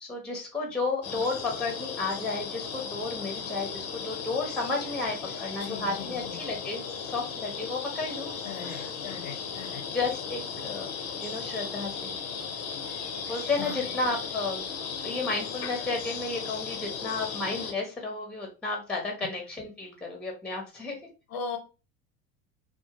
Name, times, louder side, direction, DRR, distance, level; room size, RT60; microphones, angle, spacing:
voice 1, 0.0-8.4 8.6-8.9 9.9-10.9 11.2-12.2 13.3-14.6 15.0-21.0, left 3 dB, ahead, 1 dB, 0.7 m, -32 dB
sound 1, 1.0-17.7, left 6 dB, 35° left, 0.6 m, -36 dB
voice 2, 5.6-6.4 8.4-9.8 13.6-13.9 21.3-21.6, left 6 dB, 80° left, 4 dB, 0.8 m, -39 dB
2.3 x 2.1 x 2.8 m, 0.31 s
hypercardioid pair, 80°, 40 cm